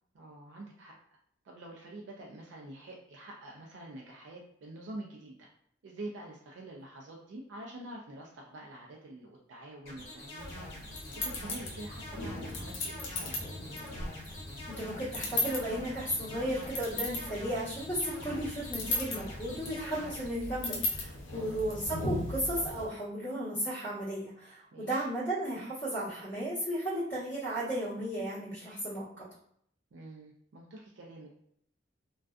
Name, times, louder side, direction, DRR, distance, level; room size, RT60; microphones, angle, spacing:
voice 1, 0.1-1.0 1.4-5.5 5.8-10.7 11.1-13.4 21.3-21.6 24.7-25.1 29.9-31.3, right 1 dB, 70° right, -1 dB, 0.4 m, -46 dB
sound 1, 9.8-20.3, left 1 dB, 35° left, 1.3 m, -46 dB
sound 2, 10.4-22.8, left 2 dB, 90° left, 0.6 m, -38 dB
voice 2, 14.7-29.2, right 1 dB, 20° left, -13 dB, 1.0 m, -34 dB
2.4 x 2.3 x 2.3 m, 0.68 s
head